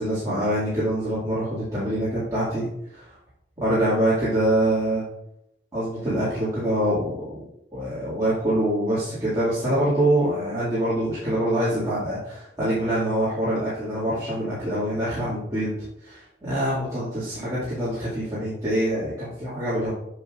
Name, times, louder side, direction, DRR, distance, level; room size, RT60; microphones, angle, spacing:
voice 1, 0.0-3.2 3.6-5.1 5.7-7.3 7.7-15.7 16.0-19.9, right 1 dB, 20° right, -12 dB, 2.1 m, -25 dB
7.4 x 6.4 x 2.5 m, 0.81 s
head